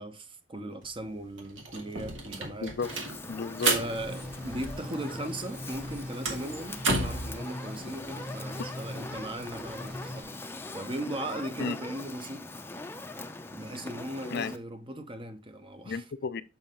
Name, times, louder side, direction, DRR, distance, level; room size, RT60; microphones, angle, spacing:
voice 1, 0.0-2.7 3.7-10.4 10.7-12.5 13.5-16.0, right 1 dB, 25° right, 0.8 m, -38 dB
sound 1, 0.8-0.9 1.2-5.1 5.4-7.3, right 3 dB, 80° right, 1.6 m, -32 dB
Fire, 2.8-14.6, left 2 dB, 10° left, 0.6 m, -42 dB
voice 2, 3.3-3.8 11.6-11.8 14.2-14.5 15.9-16.4, left 5 dB, 60° left, 0.5 m, -33 dB
sound 2, 3.6-10.2, left 1 dB, 45° right, 2.5 m, -42 dB
7.1 x 5.5 x 3.7 m
head